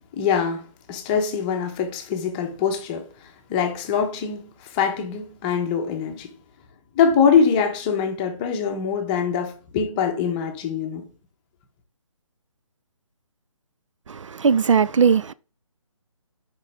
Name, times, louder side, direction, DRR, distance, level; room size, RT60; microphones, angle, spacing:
voice 1, 0.1-6.3 7.0-11.1, left 6 dB, 15° left, 0.8 m, -23 dB
voice 2, 14.1-15.3, right 6 dB, 65° right, 0.4 m, -19 dB
6.3 x 5.2 x 3.4 m
figure-of-eight pair, 155°, 17 cm